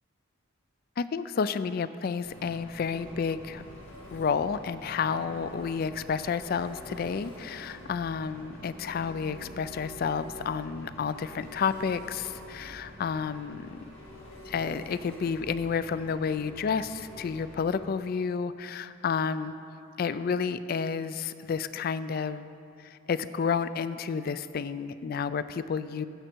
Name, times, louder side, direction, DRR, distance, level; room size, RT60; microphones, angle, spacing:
voice 1, 1.0-3.6 4.1-13.8 14.5-19.5 20.0-22.5 22.8-26.1, left 6 dB, 45° left, 14 dB, 0.3 m, -30 dB
Engine, 2.2-17.8, equal, 85° left, 1.9 m, -47 dB
15.5 x 6.3 x 4.5 m, 2.5 s
head